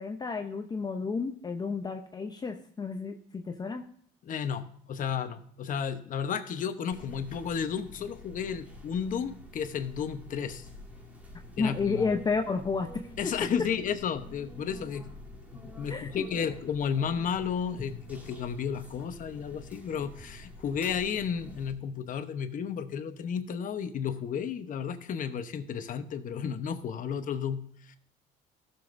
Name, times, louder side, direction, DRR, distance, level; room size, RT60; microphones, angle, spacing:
voice 1, 0.0-3.8 11.6-13.0 15.9-16.5, left 4 dB, 25° left, 4 dB, 0.7 m, -31 dB
voice 2, 4.2-10.7 11.6-12.0 13.2-15.2 15.5-28.0, left 7 dB, 50° left, 9 dB, 1.0 m, -33 dB
sound 1, 6.9-21.7, left 2 dB, 10° right, 2.0 m, -47 dB
15.5 x 7.1 x 2.6 m, 0.63 s
cardioid pair, 110°, 17 cm